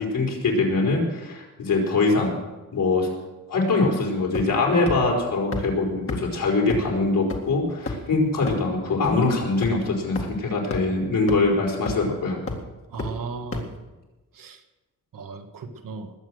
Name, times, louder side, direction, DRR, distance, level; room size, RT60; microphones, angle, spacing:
voice 1, 0.0-2.3 2.7-3.1 3.5-12.4, left 3 dB, 70° left, -1 dB, 4.6 m, -23 dB
sound 1, 4.3-4.6 4.9-5.0 5.5-5.6 6.1-6.2 6.7-6.8 7.3-7.4 7.9-8.1 8.5-8.6 9.0-9.1 9.6-9.7 10.1-10.2 10.7-10.8 11.3-11.4 11.9-12.1 12.5-12.6 13.0-13.1 13.5-13.6, left 4 dB, 40° left, 2.0 m, -29 dB
voice 2, 12.9-13.7 14.4-14.6 15.1-16.1, right 4 dB, 70° right, 6 dB, 1.5 m, -36 dB
20.5 x 8.3 x 6.4 m, 1.1 s
wide cardioid pair, 180°, 35 cm